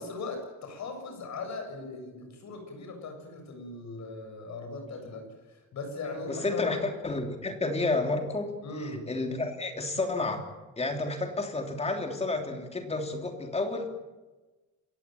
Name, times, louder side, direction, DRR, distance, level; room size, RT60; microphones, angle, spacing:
voice 1, 0.0-6.8 8.6-9.1, left 3 dB, 65° left, 5 dB, 7.3 m, -39 dB
voice 2, 6.3-8.5 8.8-10.5 10.8-13.9, left 3 dB, 20° left, 4 dB, 3.2 m, -31 dB
27.5 x 15.5 x 9.2 m, 1.2 s
wide cardioid pair, 170°, 30 cm